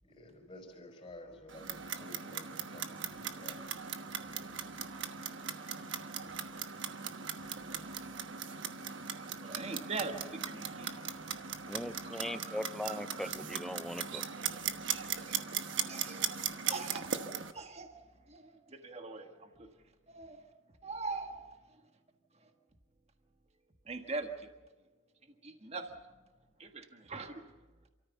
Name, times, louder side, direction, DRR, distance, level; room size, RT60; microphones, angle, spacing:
voice 1, 0.0-3.7, left 1 dB, 25° left, 3 dB, 5.1 m, -52 dB
Clock, 1.5-17.5, right 7 dB, 70° right, 1.2 m, -39 dB
voice 2, 9.4-10.9 12.1-13.3 15.3-15.5 15.9-16.4 16.7-17.2 17.5-19.7 20.1-20.4 20.8-21.6 23.9-24.5 25.4-26.0 26.6-27.4, right 3 dB, 35° right, 6 dB, 1.5 m, -42 dB
voice 3, 11.7-14.3, left 1 dB, ahead, 10 dB, 0.7 m, -39 dB
28.5 x 14.0 x 7.0 m, 1.2 s
head